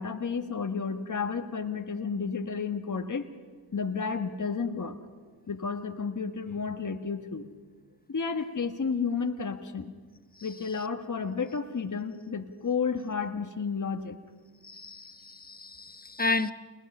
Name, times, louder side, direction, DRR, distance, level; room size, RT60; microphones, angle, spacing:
voice 1, 0.0-3.3 3.7-5.0 5.5-7.5 8.1-9.9 10.4-14.2, left 5 dB, 45° left, 5 dB, 1.7 m, -32 dB
voice 2, 14.6-16.5, left 3 dB, 20° left, 10 dB, 1.2 m, -32 dB
27.5 x 21.0 x 5.6 m, 1.5 s
supercardioid pair, 40°, 43 cm